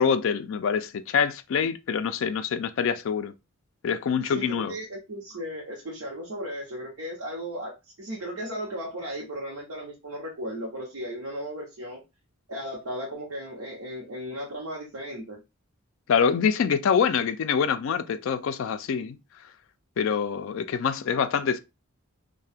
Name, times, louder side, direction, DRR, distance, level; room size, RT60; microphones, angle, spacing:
voice 1, 0.0-3.3 3.8-4.7 16.1-19.2 20.0-21.6, left 6 dB, 60° left, 0.3 m, -25 dB
voice 2, 4.2-12.0 12.5-15.4, equal, 75° right, 0.7 m, -36 dB
2.7 x 2.1 x 3.3 m
head